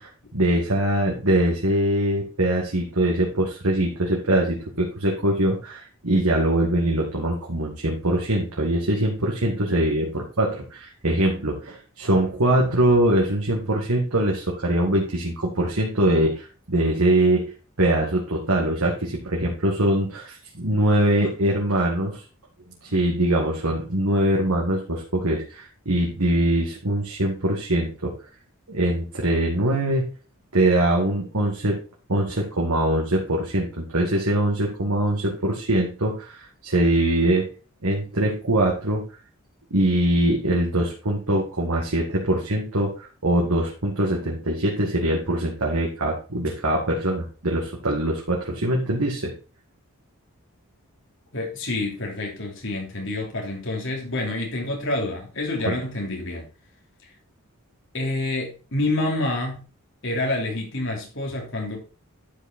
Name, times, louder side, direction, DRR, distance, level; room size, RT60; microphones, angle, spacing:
voice 1, 0.0-17.5 17.8-22.2 22.8-28.1 28.7-30.1 30.5-31.8 32.1-37.4 37.8-39.0 39.7-49.3 55.7-55.8, right 1 dB, 90° right, -2 dB, 2.2 m, -23 dB
voice 2, 51.3-56.5 57.9-59.6 60.0-61.8, left 2 dB, 60° left, 0 dB, 3.2 m, -27 dB
11.5 x 5.1 x 4.5 m, 0.35 s
head